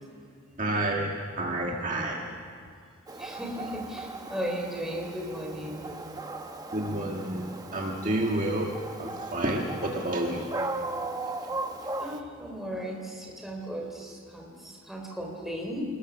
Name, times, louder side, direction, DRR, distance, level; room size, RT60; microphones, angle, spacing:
voice 1, 0.6-1.1 1.4-2.2 6.7-10.5, right 1 dB, 35° right, 0 dB, 1.7 m, -29 dB
voice 2, 3.1-5.8 12.0-15.8, equal, ahead, -1 dB, 3.8 m, -36 dB
Dog, 3.1-12.2, right 2 dB, 15° right, 1.0 m, -37 dB
26.5 x 21.0 x 6.3 m, 2.2 s
head